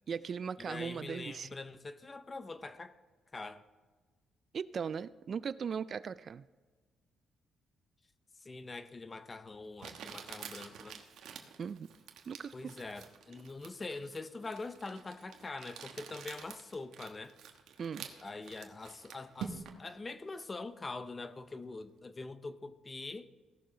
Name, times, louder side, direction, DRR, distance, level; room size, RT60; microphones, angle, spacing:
voice 1, 0.1-1.5 4.5-6.4 11.6-11.9 12.3-12.7 17.8-18.1, right 6 dB, 50° right, 0.3 m, -38 dB
voice 2, 0.7-3.0 3.3-3.6 8.4-11.0 12.5-17.4 18.2-23.3, left 3 dB, 25° left, 0.7 m, -44 dB
Crumpling crinkling, 8.9-9.0 9.8-19.9, right 7 dB, 75° right, 1.1 m, -48 dB
16.5 x 6.7 x 3.8 m
cardioid pair, 90°, 0 cm